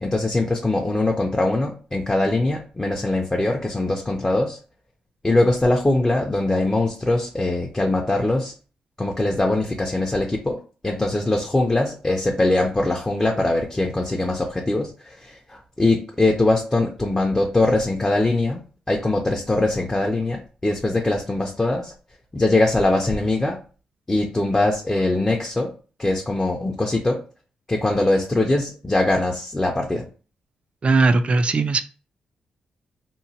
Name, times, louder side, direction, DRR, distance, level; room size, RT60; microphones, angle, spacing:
voice 1, 0.0-4.6 5.2-8.5 9.0-18.6 18.9-22.0 22.3-23.6 24.1-25.7 26.0-27.2 27.7-30.1, left 2 dB, 20° left, 0 dB, 0.5 m, -22 dB
voice 2, 30.8-31.8, right 3 dB, 40° right, 9 dB, 0.3 m, -18 dB
2.9 x 2.0 x 2.7 m, 0.37 s
cardioid pair, 65°, 3 cm